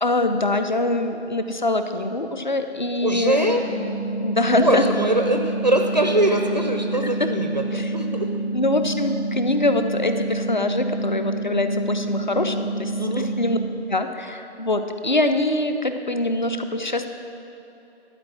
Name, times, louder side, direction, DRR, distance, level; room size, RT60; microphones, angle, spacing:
voice 1, 0.0-3.7 4.2-4.8 7.0-7.3 7.7-7.9 8.5-13.6 13.9-17.1, left 2 dB, 45° left, 8 dB, 0.6 m, -23 dB
voice 2, 3.0-3.6 4.5-8.3 13.0-13.3, right 1 dB, 40° right, 4 dB, 0.5 m, -22 dB
sound 1, 3.7-13.7, right 2 dB, 85° left, 2.7 m, -27 dB
12.5 x 5.0 x 7.5 m, 3.0 s
figure-of-eight pair, 160°, 34 cm